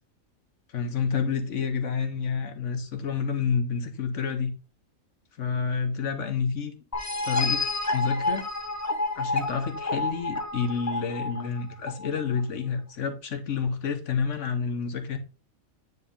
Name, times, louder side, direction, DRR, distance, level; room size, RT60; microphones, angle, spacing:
voice 1, 0.7-4.5 5.4-6.7 7.2-7.6 7.9-8.5 9.2-15.2, left 5 dB, 65° left, 1.2 m, -29 dB
sound 1, 6.9-12.4, left 2 dB, 15° left, 0.7 m, -29 dB
9.3 x 3.3 x 3.7 m
omnidirectional pair, 1.4 m